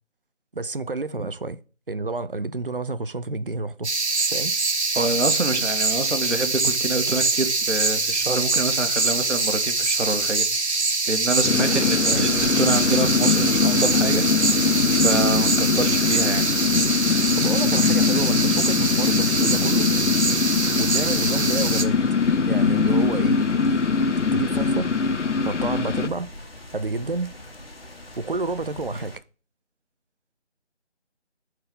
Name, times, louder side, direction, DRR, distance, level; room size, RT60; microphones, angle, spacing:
voice 1, 0.5-1.6 1.9-3.9 4.3-4.5 11.6-12.3 17.4-19.9 20.7-22.0 22.5-23.4 24.3-24.9 25.4-26.3 26.7-27.3 28.2-29.2, right 3 dB, 50° right, 0.6 m, -29 dB
sound 1, 3.8-21.8, right 3 dB, 70° right, 1.2 m, -24 dB
voice 2, 5.0-10.5 11.1-14.2 14.9-16.4, right 3 dB, 85° right, 1.8 m, -26 dB
sound 2, 11.4-26.1, left 5 dB, 85° left, 0.9 m, -22 dB
sound 3, 12.1-29.2, left 1 dB, 55° left, 2.0 m, -42 dB
7.3 x 4.8 x 5.3 m
figure-of-eight pair, 180°, 35 cm